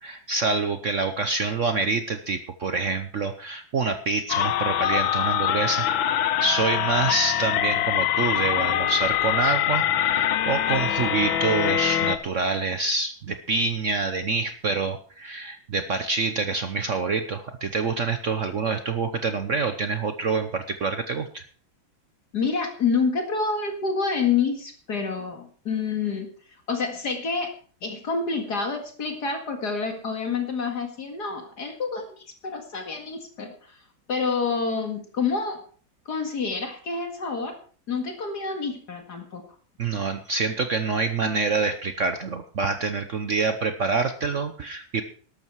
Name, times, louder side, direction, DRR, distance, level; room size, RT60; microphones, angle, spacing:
voice 1, 0.0-5.9 6.4-21.4 39.8-45.0, right 4 dB, 50° right, 9 dB, 1.0 m, -26 dB
sound 1, 4.3-12.2, left 11 dB, 85° left, 1.6 m, -24 dB
voice 2, 22.3-26.3 26.7-27.5 27.8-33.8 34.1-35.6 36.1-37.6 37.9-39.4, left 5 dB, 55° left, 4 dB, 2.5 m, -28 dB
13.0 x 12.0 x 4.6 m, 0.43 s
omnidirectional pair, 2.1 m